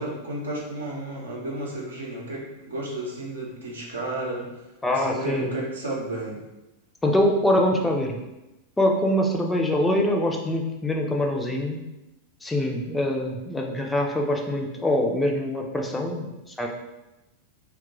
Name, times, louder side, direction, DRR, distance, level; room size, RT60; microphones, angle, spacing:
voice 1, 0.0-4.5 4.9-6.4, right 2 dB, 70° right, -3 dB, 0.7 m, -32 dB
voice 2, 4.8-5.5 7.0-8.2 8.8-11.9 12.4-16.7, left 1 dB, 10° left, 1 dB, 0.5 m, -24 dB
2.9 x 2.3 x 3.8 m, 0.98 s
figure-of-eight pair, 90°, 0 cm